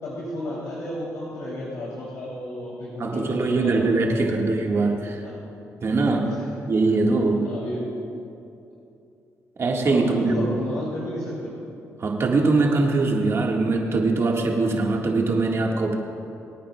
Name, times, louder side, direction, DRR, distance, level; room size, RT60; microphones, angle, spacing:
voice 1, 0.0-4.3 5.2-5.3 6.0-6.1 7.3-7.8 9.8-11.6, left 1 dB, 80° left, -7 dB, 3.0 m, -32 dB
voice 2, 3.0-5.2 5.8-6.3 6.7-7.5 9.6-10.5 12.0-15.9, right 3 dB, 45° right, 0 dB, 1.7 m, -22 dB
24.0 x 9.0 x 2.3 m, 2.7 s
cardioid pair, 75°, 6 cm